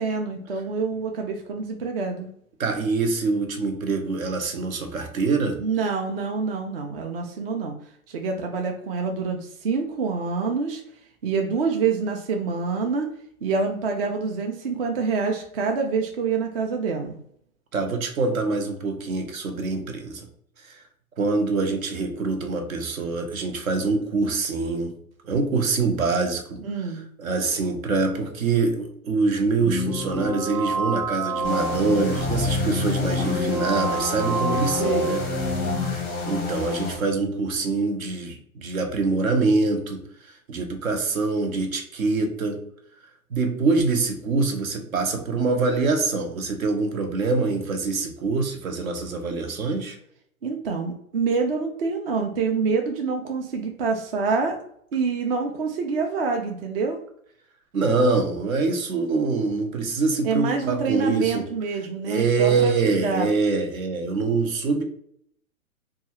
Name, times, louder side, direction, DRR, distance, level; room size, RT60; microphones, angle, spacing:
voice 1, 0.0-2.3 5.6-7.7 8.1-10.8 11.2-13.1 13.4-17.2 26.6-27.0 34.8-35.1 50.4-54.6 54.9-57.0 60.2-62.7 63.0-63.3, right 5 dB, 45° right, 3 dB, 0.4 m, -26 dB
voice 2, 2.6-5.6 17.7-20.3 20.6-20.8 21.2-24.9 25.2-26.6 27.2-35.2 35.8-42.6 43.3-50.0 57.7-61.5 62.1-64.8, right 3 dB, 65° right, 5 dB, 0.8 m, -24 dB
sound 1, 29.6-35.9, equal, 10° right, 0.9 m, -27 dB
sound 2, 31.4-37.0, left 4 dB, 20° left, 0.5 m, -31 dB
2.7 x 2.3 x 2.8 m, 0.67 s
figure-of-eight pair, 125°, 44 cm